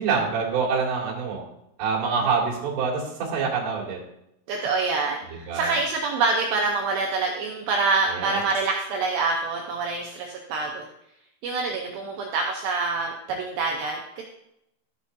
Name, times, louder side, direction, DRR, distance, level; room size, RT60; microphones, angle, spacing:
voice 1, 0.0-1.4 1.8-4.0 5.5-5.8 8.1-8.4, right 5 dB, 60° right, -4 dB, 3.9 m, -26 dB
voice 2, 4.5-10.9 11.4-14.2, right 4 dB, 80° right, 0 dB, 2.5 m, -26 dB
13.5 x 8.3 x 2.7 m, 0.82 s
omnidirectional pair, 5.9 m